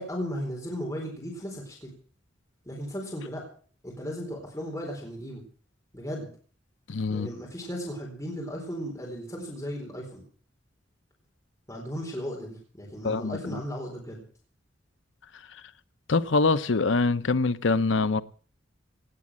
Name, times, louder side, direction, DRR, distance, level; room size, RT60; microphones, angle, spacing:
voice 1, 0.0-1.9 2.7-3.4 3.8-5.4 5.9-6.3 7.1-10.2 11.7-14.2, equal, 15° left, 4.1 m, -36 dB
voice 2, 6.9-7.3 13.0-13.6 16.1-18.2, left 3 dB, 75° left, 0.7 m, -24 dB
18.5 x 8.4 x 7.6 m
head